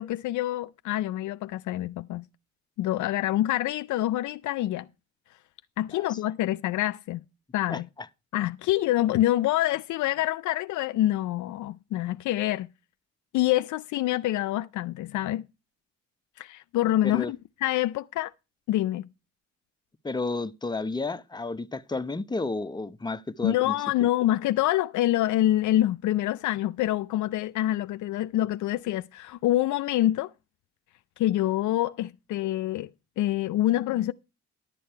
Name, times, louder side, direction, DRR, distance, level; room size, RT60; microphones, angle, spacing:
voice 1, 0.0-2.2 2.8-4.9 5.8-7.2 7.5-7.9 8.3-12.7 13.3-15.4 16.4-18.3 18.7-19.1 23.4-30.3 31.2-32.9 33.2-34.1, left 14 dB, 75° left, 0.5 m, -26 dB
voice 2, 20.0-23.7, left 3 dB, 15° left, 0.8 m, -32 dB
11.0 x 8.5 x 4.4 m
cardioid pair, 90°, 30 cm